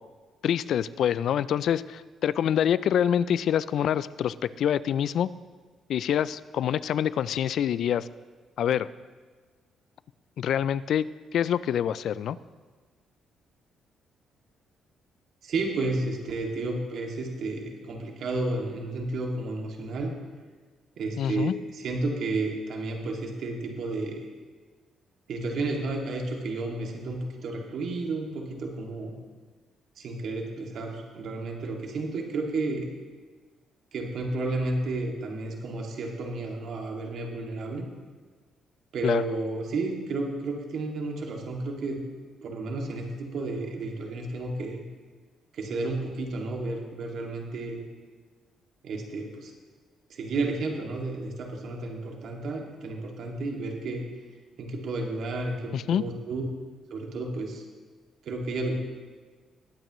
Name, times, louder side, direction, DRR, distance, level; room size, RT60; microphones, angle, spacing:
voice 1, 0.4-5.3 5.9-8.1 8.6-8.9 10.4-12.4 21.2-21.5 39.0-39.2 55.7-56.0, left 9 dB, 70° left, 17 dB, 0.3 m, -26 dB
voice 2, 15.4-20.1 21.0-24.3 25.3-29.1 30.0-32.9 33.9-37.8 38.9-42.0 42.4-44.8 45.5-47.8 48.8-49.5 50.1-54.1 54.6-56.5 56.9-57.6 58.2-58.7, right 2 dB, 70° right, 0 dB, 2.2 m, -32 dB
20.0 x 9.0 x 3.1 m, 1.4 s
cardioid pair, 90°, 0 cm